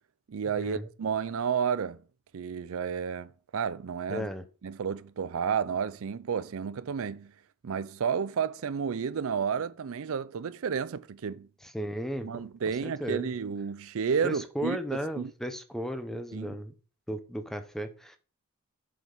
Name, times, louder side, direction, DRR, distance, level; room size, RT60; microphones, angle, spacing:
voice 1, 0.3-2.0 2.3-4.3 4.6-7.3 7.6-11.5 12.2-14.8 15.2-15.3 16.3-16.6, right 6 dB, 65° right, 0.4 m, -31 dB
voice 2, 4.1-4.4 11.6-12.3 12.8-13.3 14.2-16.7 17.1-18.2, equal, ahead, 0.8 m, -35 dB
7.8 x 5.1 x 5.4 m
head